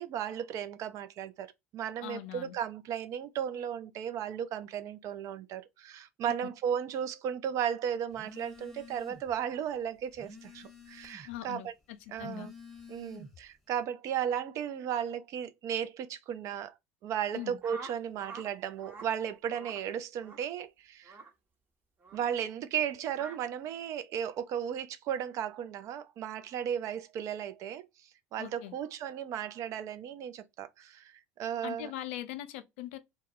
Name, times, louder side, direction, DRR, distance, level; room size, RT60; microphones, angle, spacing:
voice 1, 0.0-1.5 1.7-11.7 12.1-12.5 12.9-16.7 17.0-21.2 22.1-31.9, right 9 dB, 50° right, 0.4 m, -35 dB
voice 2, 2.0-2.5 11.2-12.5 17.3-17.6 28.4-28.7 31.6-33.0, left 13 dB, 75° left, 0.4 m, -41 dB
Telephone, 8.1-9.4 9.7-11.4 12.0-13.5, left 3 dB, ahead, 0.8 m, -50 dB
sound 1, 17.6-18.5 18.8-19.1 19.5-19.8 20.2-20.4 21.0-21.3 22.0-22.2 23.1-23.4, right 4 dB, 30° right, 0.9 m, -46 dB
2.2 x 2.1 x 2.7 m
hypercardioid pair, 75°, 7 cm